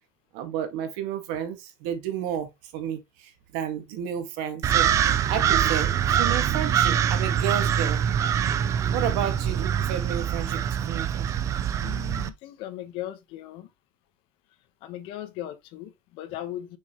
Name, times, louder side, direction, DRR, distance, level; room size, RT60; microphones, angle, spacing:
voice 1, 0.3-8.0 8.9-11.3, right 9 dB, 80° right, 2.1 m, -32 dB
sound 1, 4.6-12.3, right 9 dB, 30° right, 0.5 m, -24 dB
voice 2, 11.8-13.7 14.8-16.8, left 13 dB, 60° left, 1.3 m, -38 dB
6.4 x 5.1 x 3.2 m
cardioid pair, 160°, 10 cm